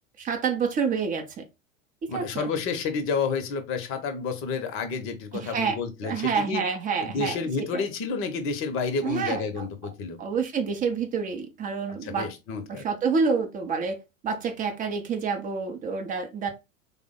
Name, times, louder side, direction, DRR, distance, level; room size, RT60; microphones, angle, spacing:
voice 1, 0.2-1.4 2.0-2.5 5.3-7.9 9.0-9.6 10.2-12.3 12.7-14.0 14.2-16.5, right 5 dB, 20° right, 0.5 m, -28 dB
voice 2, 2.1-6.6 7.0-10.2 12.0-12.9, left 5 dB, 35° left, 0.7 m, -30 dB
3.3 x 2.1 x 3.6 m
hypercardioid pair, 95°, 40 cm